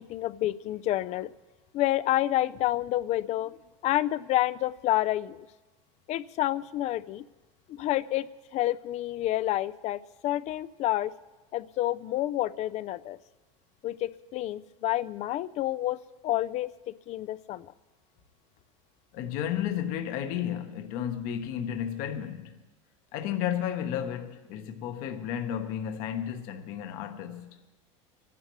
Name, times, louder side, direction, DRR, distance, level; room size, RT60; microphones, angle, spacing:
voice 1, 0.0-1.3 1.7-3.6 3.8-5.4 6.1-7.2 7.7-11.1 11.5-13.2 13.8-17.7, left 14 dB, 45° left, 0.5 m, -29 dB
voice 2, 19.1-22.6 23.1-27.6, left 9 dB, 60° left, 1.2 m, -33 dB
25.0 x 11.0 x 3.1 m
supercardioid pair, 115°, 16 cm